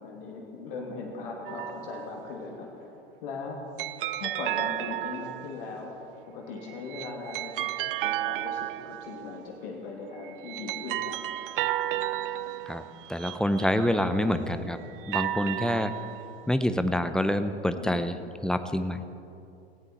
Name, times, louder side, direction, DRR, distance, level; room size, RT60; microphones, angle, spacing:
voice 1, 0.0-2.9 3.2-3.6 4.1-5.9 6.2-7.7 8.0-11.2 17.7-18.0, left 3 dB, 55° left, 0 dB, 2.8 m, -39 dB
sound 1, 1.5-2.2 3.8-5.7 6.7-9.5 10.2-14.3 14.9-16.5, right 13 dB, 55° right, 0.5 m, -33 dB
voice 2, 13.1-14.8 15.1-16.0 16.5-19.1, left 1 dB, ahead, 10 dB, 0.6 m, -27 dB
19.0 x 16.5 x 4.3 m, 2.7 s
figure-of-eight pair, 90°, 33 cm